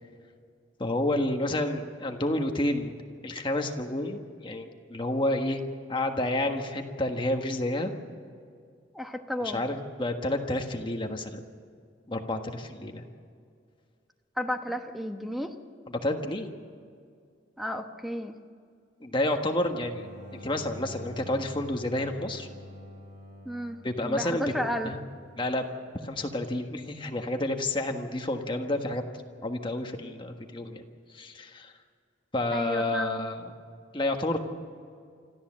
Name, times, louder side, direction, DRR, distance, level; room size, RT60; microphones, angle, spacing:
voice 1, 0.8-2.9 3.2-5.6 5.9-7.9 9.4-11.4 12.1-13.0 15.9-16.5 19.0-20.1 20.3-22.5 23.8-24.5 24.8-25.0 25.4-25.7 26.0-29.0 29.4-30.8 31.1-31.7 32.3-33.5 33.9-34.4, left 1 dB, 25° left, 4 dB, 1.4 m, -30 dB
voice 2, 8.9-9.6 14.4-15.6 17.6-18.3 23.4-23.8 24.0-24.9 32.5-33.2, equal, ahead, 5 dB, 1.1 m, -32 dB
Bowed string instrument, 19.7-26.8, left 1 dB, 60° left, 6.3 m, -47 dB
26.0 x 14.5 x 7.5 m, 2.2 s
head